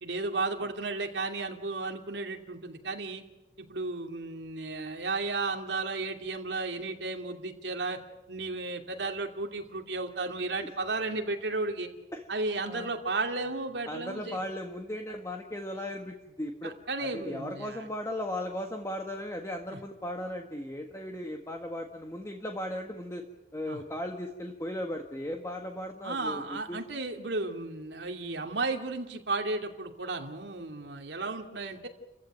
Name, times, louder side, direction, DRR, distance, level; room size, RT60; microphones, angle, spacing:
voice 1, 0.0-3.2 3.7-8.0 8.3-11.9 12.3-14.4 16.6-17.9 23.6-23.8 26.0-31.9, right 3 dB, 90° right, 3 dB, 2.7 m, -34 dB
voice 2, 13.9-16.7 17.0-23.2 23.5-26.8, left 1 dB, 15° left, 2 dB, 1.7 m, -37 dB
29.5 x 15.5 x 9.2 m, 1.0 s
head